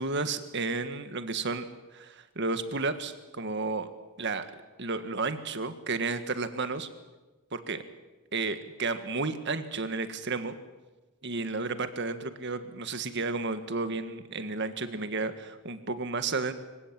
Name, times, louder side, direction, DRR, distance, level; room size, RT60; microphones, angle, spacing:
voice 1, 0.0-3.9 4.2-4.5 4.8-6.9 7.5-7.8 8.3-10.5 11.2-16.5, right 3 dB, 55° right, 10 dB, 1.7 m, -32 dB
25.5 x 16.0 x 9.0 m, 1.2 s
head